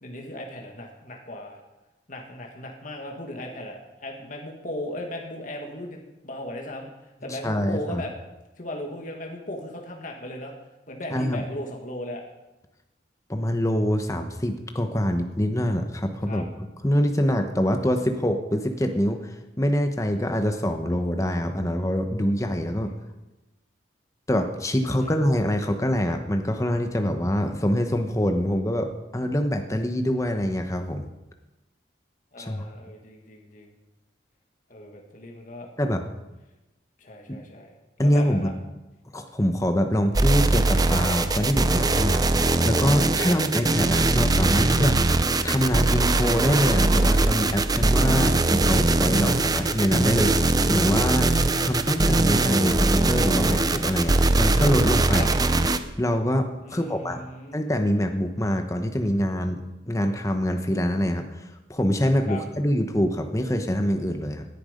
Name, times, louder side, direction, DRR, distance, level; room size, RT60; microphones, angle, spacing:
voice 1, 0.0-1.6 2.1-6.9 7.2-8.1 8.6-10.5 10.9-12.2 16.3-16.4 22.9-23.0 24.8-25.2 32.3-33.7 34.7-35.7 37.0-38.5 43.2-43.4 48.1-48.3 55.1-55.3 56.6-57.6 62.3-62.4, left 1 dB, 45° left, 1 dB, 1.9 m, -37 dB
voice 2, 7.3-8.0 11.1-11.4 13.3-16.5 16.8-19.3 19.6-22.9 24.3-31.1 32.4-32.7 35.8-36.0 37.3-37.4 38.0-38.5 39.1-45.0 45.4-51.3 51.6-55.3 56.0-57.2 57.5-64.5, equal, 15° left, 5 dB, 1.0 m, -25 dB
sound 1, 40.1-55.8, right 2 dB, 20° right, 0.6 m, -21 dB
18.0 x 10.5 x 5.2 m, 1.0 s
head